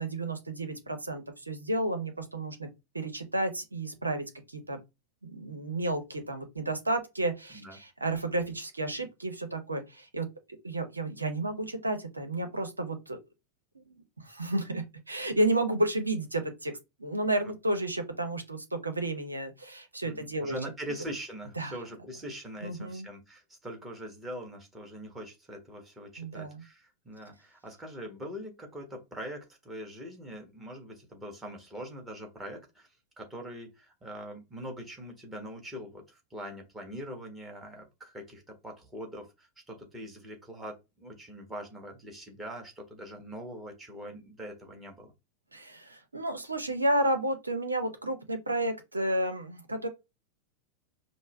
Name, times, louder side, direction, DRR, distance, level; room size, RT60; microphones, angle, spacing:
voice 1, 0.0-2.7 2.9-4.8 5.2-10.3 10.6-13.2 13.7-16.7 17.0-20.6 21.6-21.8 22.6-23.1 26.2-26.6 45.5-49.9, right 1 dB, 80° right, 0.8 m, -32 dB
voice 2, 20.0-45.1, equal, 15° right, 1.4 m, -42 dB
5.2 x 2.0 x 3.4 m
figure-of-eight pair, 90°, 0 cm